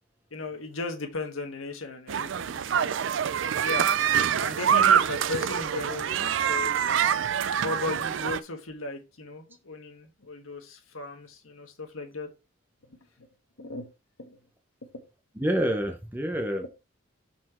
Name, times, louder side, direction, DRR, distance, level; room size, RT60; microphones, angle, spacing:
voice 1, 0.3-2.9 3.4-4.0 4.4-6.7 7.6-12.3 12.8-13.3 13.6-13.9 14.2-14.4 14.8-15.0 16.6-16.7, left 3 dB, 85° left, 1.5 m, -36 dB
sound 1, 2.1-8.4, right 8 dB, 65° right, 0.3 m, -25 dB
voice 2, 15.4-16.7, equal, 10° right, 0.7 m, -27 dB
6.4 x 4.4 x 4.3 m
head